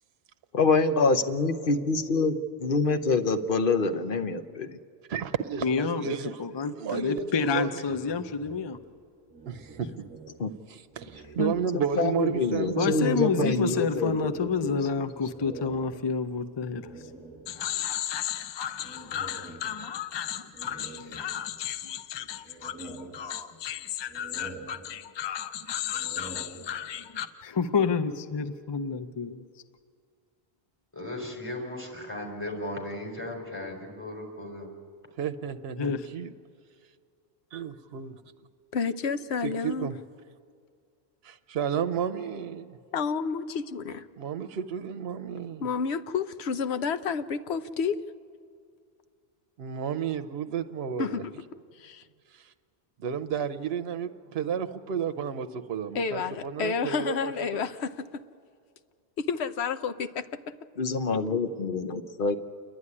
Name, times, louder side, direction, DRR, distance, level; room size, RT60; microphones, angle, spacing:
voice 1, 0.5-4.8 10.4-10.5 11.7-14.8 60.8-62.4, left 4 dB, 55° left, 8 dB, 1.1 m, -26 dB
voice 2, 5.1-6.4 6.8-7.7 9.4-10.1 10.7-13.9 35.2-36.3 37.5-38.2 39.4-40.0 41.2-42.8 44.2-45.7 49.6-51.2 52.3-52.5 53.0-57.6, right 7 dB, 70° right, 9 dB, 0.9 m, -32 dB
voice 3, 5.6-6.1 6.4-8.8 9.8-9.9 11.4-11.5 12.8-17.1 17.5-29.4 35.8-36.1, left 5 dB, 30° left, 9 dB, 0.6 m, -30 dB
sound 1, 7.8-10.6 10.9-12.0 12.4-17.8 18.8-20.1 20.5-21.8 22.2-23.7 24.1-25.4 25.8-27.1, right 3 dB, 5° right, 2.3 m, -47 dB
voice 4, 30.9-34.7, left 1 dB, 10° left, 0 dB, 4.0 m, -36 dB
voice 5, 38.7-39.9 42.9-44.1 45.6-48.0 51.0-51.3 51.8-52.0 55.9-58.1 59.2-60.4, left 5 dB, 80° left, 11 dB, 1.0 m, -30 dB
29.0 x 11.0 x 9.7 m, 2.1 s
omnidirectional pair, 1.1 m